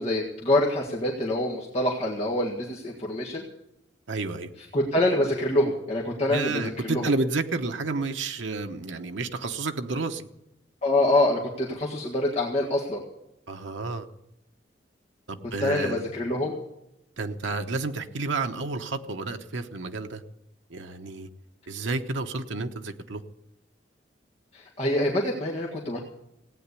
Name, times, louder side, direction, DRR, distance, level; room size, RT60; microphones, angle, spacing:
voice 1, 0.0-3.4 4.7-7.1 10.8-13.0 15.6-16.6 24.5-26.0, left 1 dB, 35° left, -2 dB, 1.7 m, -25 dB
voice 2, 4.1-4.5 6.3-10.3 13.5-14.1 15.3-16.0 17.2-20.2 20.7-21.3 21.7-23.2, right 3 dB, 80° right, 6 dB, 0.9 m, -30 dB
17.0 x 9.1 x 8.3 m, 0.86 s
head